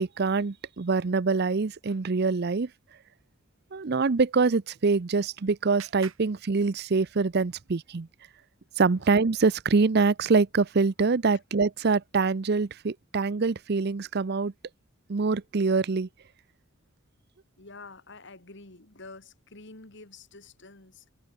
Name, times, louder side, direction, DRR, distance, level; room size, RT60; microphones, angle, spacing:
voice 1, 0.0-2.7 3.7-8.1 8.8-14.5 15.1-16.1, right 4 dB, 50° right, 0.6 m, -25 dB
Clapping, 4.7-7.3, right 9 dB, 70° right, 1.3 m, -50 dB
voice 2, 17.6-21.1, left 3 dB, 55° left, 2.7 m, -48 dB
open air
head